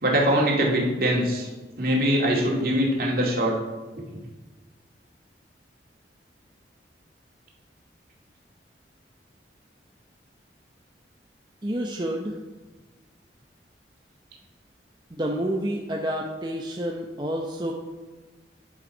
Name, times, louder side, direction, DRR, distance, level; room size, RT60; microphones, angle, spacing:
voice 1, 0.0-1.5 1.8-3.6, equal, 55° right, -1 dB, 2.4 m, -22 dB
voice 2, 11.6-12.4 15.1-17.7, right 1 dB, 25° right, 0 dB, 0.7 m, -29 dB
9.8 x 7.2 x 5.4 m, 1.2 s
head